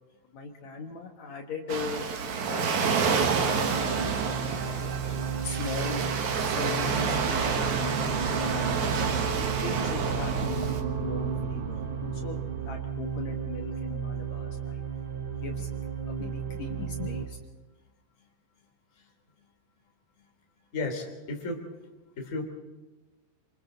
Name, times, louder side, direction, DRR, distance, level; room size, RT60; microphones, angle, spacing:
voice 1, 0.3-2.0 2.4-3.1 3.6-4.9 5.4-7.4 7.7-8.0 8.4-9.0 9.4-12.4 12.7-14.8 15.4-15.7 16.1-17.4, left 4 dB, 75° left, 2 dB, 1.6 m, -39 dB
Waves surf, 1.7-10.8, right 5 dB, 60° right, 2.0 m, -29 dB
sound 1, 2.9-17.2, right 6 dB, 40° right, 3.2 m, -34 dB
sound 2, 6.8-12.8, right 5 dB, 85° right, 4.5 m, -34 dB
voice 2, 20.7-21.6 22.2-22.4, left 2 dB, 20° left, 2 dB, 2.6 m, -33 dB
27.5 x 26.0 x 4.0 m, 1.1 s
omnidirectional pair, 5.5 m